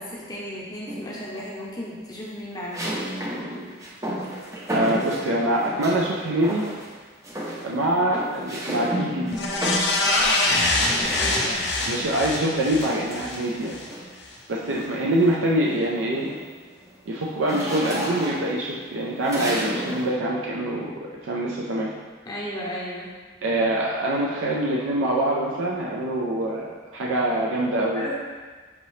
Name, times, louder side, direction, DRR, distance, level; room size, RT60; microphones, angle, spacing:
voice 1, 0.0-3.0 11.1-11.7 22.3-23.1 28.0-28.1, left 1 dB, 20° left, -5 dB, 0.6 m, -34 dB
sound 1, 0.9-1.4 2.7-6.1 6.4-7.0 7.2-11.7 12.8-14.2 14.7-15.0 15.3-20.1, right 1 dB, 15° right, 0.5 m, -32 dB
voice 2, 4.7-6.6 7.6-9.4 11.9-13.8 14.5-16.3 17.1-21.9 23.4-28.1, right 1 dB, 90° right, -3 dB, 0.5 m, -24 dB
sound 2, 9.3-13.9 14.3-14.4, left 2 dB, 60° left, 0.7 m, -24 dB
5.9 x 2.8 x 3.1 m, 1.4 s
head